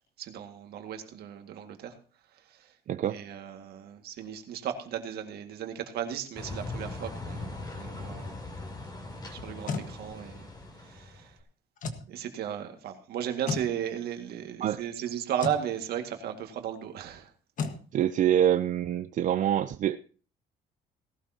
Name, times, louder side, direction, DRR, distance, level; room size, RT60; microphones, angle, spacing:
voice 1, 0.2-2.0 2.3-2.7 3.1-8.4 9.3-10.5 10.8-11.4 12.1-17.3, right 9 dB, 70° right, 2.0 m, -35 dB
sound 1, 6.4-11.3, left 2 dB, 25° left, 3.4 m, -40 dB
sound 2, 9.4-9.9 11.8-12.1 13.5-13.7 15.4-15.6 17.6-17.8, left 4 dB, 50° left, 1.6 m, -33 dB
voice 2, 17.9-20.0, right 10 dB, 50° right, 0.5 m, -25 dB
18.0 x 12.0 x 2.9 m
cardioid pair, 110°, 17 cm